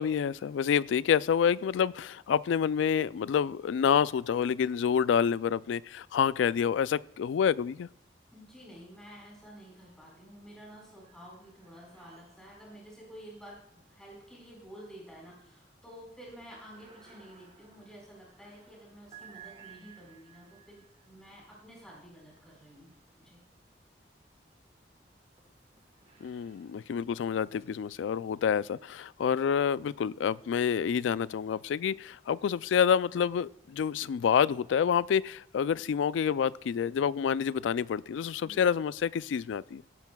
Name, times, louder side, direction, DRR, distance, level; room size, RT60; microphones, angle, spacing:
voice 1, 0.0-7.9 26.2-39.8, left 7 dB, 85° left, 0.3 m, -28 dB
voice 2, 8.3-23.4 38.4-38.6, equal, 5° left, 4.5 m, -51 dB
sound 1, 9.5-10.2 10.5-23.7 24.3-28.8, right 7 dB, 30° right, 1.3 m, -59 dB
17.5 x 10.5 x 2.3 m
head